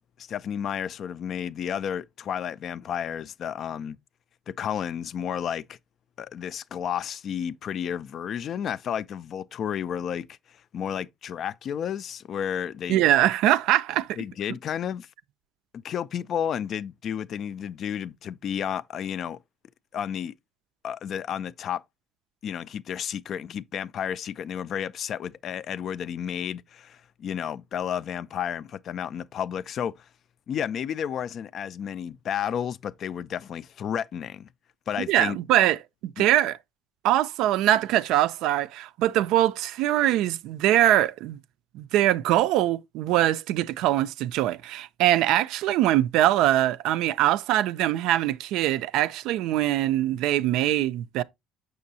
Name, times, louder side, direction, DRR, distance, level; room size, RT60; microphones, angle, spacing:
voice 1, 0.2-4.0 4.5-5.8 6.2-13.0 14.2-15.1 15.7-19.4 19.9-20.3 20.8-21.8 22.4-30.1 30.5-34.5 34.9-35.4 36.2-36.3, left 8 dB, 45° left, 0.3 m, -32 dB
voice 2, 12.9-14.1 35.1-36.6 37.0-41.4 41.7-51.2, right 13 dB, 70° right, 0.4 m, -23 dB
6.6 x 6.2 x 2.7 m
cardioid pair, 125°, 0 cm